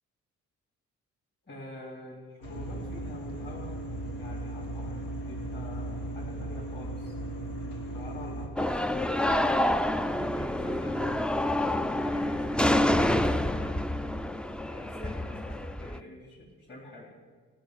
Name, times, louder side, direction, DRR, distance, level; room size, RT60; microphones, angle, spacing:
voice 1, 1.5-3.7 4.1-7.1 7.9-11.4 12.0-13.8 14.7-17.1, left 1 dB, 35° left, -6 dB, 3.6 m, -47 dB
sound 1, 2.4-8.5, right 1 dB, 90° left, 1.8 m, -36 dB
sound 2, 8.6-16.0, left 1 dB, 5° left, 0.3 m, -27 dB
15.5 x 5.5 x 8.0 m, 1.5 s
cardioid pair, 90°, 30 cm